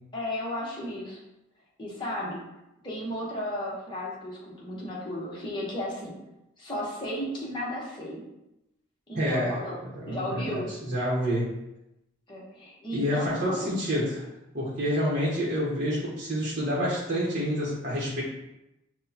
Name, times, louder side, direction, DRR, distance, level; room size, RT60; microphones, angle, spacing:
voice 1, 0.1-1.2 1.8-2.4 2.8-6.2 6.6-8.2 9.1-9.8 10.1-10.7 12.3-13.7, left 1 dB, 25° left, -5 dB, 1.0 m, -34 dB
voice 2, 9.2-9.6 9.8-11.5 12.9-14.3 14.5-18.2, equal, 40° right, -6 dB, 0.9 m, -28 dB
6.1 x 2.2 x 2.8 m, 0.91 s
head